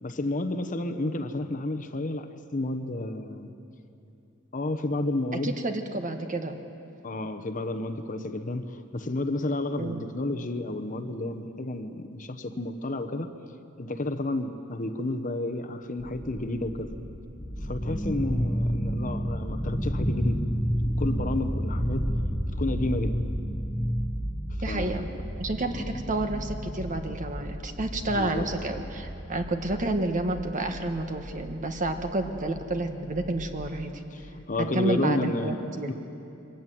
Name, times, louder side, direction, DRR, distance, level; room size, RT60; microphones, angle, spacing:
voice 1, 0.0-3.5 4.5-5.6 7.0-13.3 13.8-16.9 17.6-20.4 20.8-22.1 22.6-23.3 24.7-25.0 25.9-26.0 28.0-28.5 34.1-35.6 35.9-36.0, left 2 dB, 40° left, 9 dB, 1.0 m, -31 dB
voice 2, 5.4-6.6 9.8-10.0 24.6-34.0 34.7-35.9, right 2 dB, 40° right, 6 dB, 1.4 m, -30 dB
sound 1, 16.0-33.8, equal, 5° left, 1.6 m, -31 dB
23.5 x 14.5 x 9.3 m, 2.8 s
head